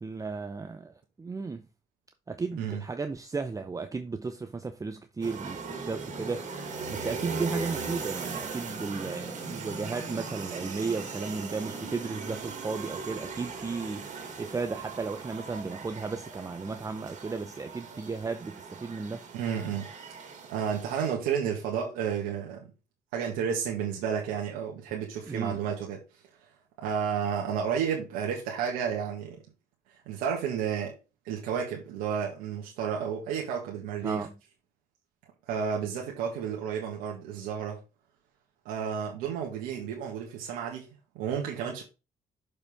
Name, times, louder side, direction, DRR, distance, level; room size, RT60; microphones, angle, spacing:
voice 1, 0.0-1.7 2.3-19.2 25.3-25.6 34.0-34.3, right 4 dB, 20° right, 0.7 m, -34 dB
sound 1, 5.2-21.1, right 4 dB, 55° right, 2.4 m, -39 dB
voice 2, 19.3-19.9 20.5-22.7 23.1-26.0 26.8-29.4 30.1-30.9 31.2-34.3 35.5-37.8 38.6-40.9 41.1-41.8, right 7 dB, 90° right, 1.7 m, -31 dB
6.8 x 5.2 x 3.5 m
supercardioid pair, 70°, 15 cm